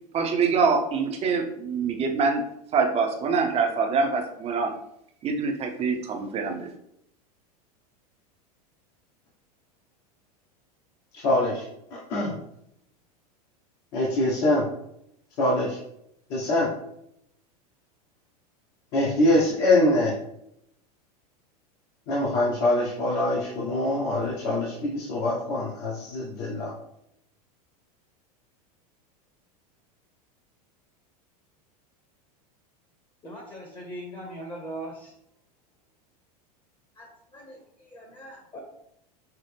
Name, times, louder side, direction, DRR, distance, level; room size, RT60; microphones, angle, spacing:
voice 1, 0.1-2.4 2.7-4.7 5.2-6.7, right 5 dB, 30° right, 4 dB, 0.7 m, -25 dB
voice 2, 11.1-11.6 11.9-12.3 13.9-14.6 15.4-15.8 16.3-16.7 18.9-20.1 22.1-26.7, left 1 dB, 55° left, -5 dB, 1.2 m, -24 dB
voice 3, 33.2-35.1 37.0-38.6, right 1 dB, 25° left, 1 dB, 1.0 m, -40 dB
5.7 x 2.0 x 3.4 m, 0.75 s
hypercardioid pair, 105°, 20 cm